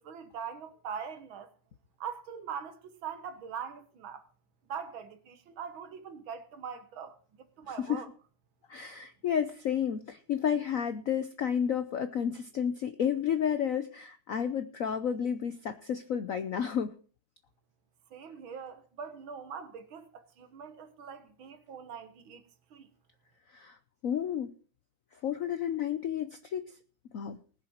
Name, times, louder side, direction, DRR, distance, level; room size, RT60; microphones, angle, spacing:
voice 1, 0.0-1.5 2.0-4.2 4.7-7.2 7.6-8.1 18.1-22.4 22.7-22.9, right 7 dB, 70° right, 2.1 m, -42 dB
voice 2, 7.7-8.0 8.7-16.9 23.5-23.8 24.0-24.5 25.2-26.6 27.1-27.4, left 8 dB, 70° left, 0.8 m, -31 dB
20.0 x 7.2 x 4.5 m
omnidirectional pair, 2.3 m